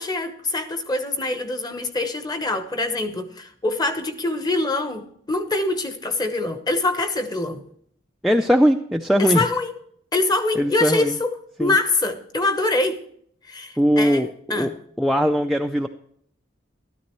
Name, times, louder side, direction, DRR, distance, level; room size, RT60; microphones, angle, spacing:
voice 1, 0.0-7.6 9.2-9.7 10.1-13.0 13.4-14.2 14.5-14.7, left 2 dB, 20° left, 8 dB, 0.9 m, -24 dB
voice 2, 8.2-9.4 10.6-11.2 11.6-11.8 13.8-14.7 15.0-15.9, equal, ahead, 3 dB, 0.3 m, -20 dB
13.0 x 12.5 x 3.0 m, 0.65 s
head